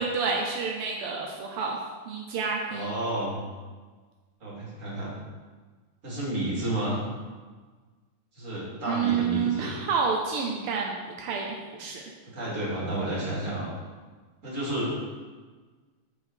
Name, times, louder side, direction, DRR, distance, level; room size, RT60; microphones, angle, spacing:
voice 1, 0.0-1.8 2.1-2.9 8.9-12.0, right 5 dB, 80° right, 0 dB, 1.6 m, -29 dB
voice 2, 2.7-3.4 4.4-5.1 6.0-7.0 8.3-9.8 12.3-13.8 14.4-14.9, right 1 dB, 35° right, -6 dB, 2.6 m, -31 dB
7.6 x 4.9 x 4.5 m, 1.4 s
omnidirectional pair, 2.4 m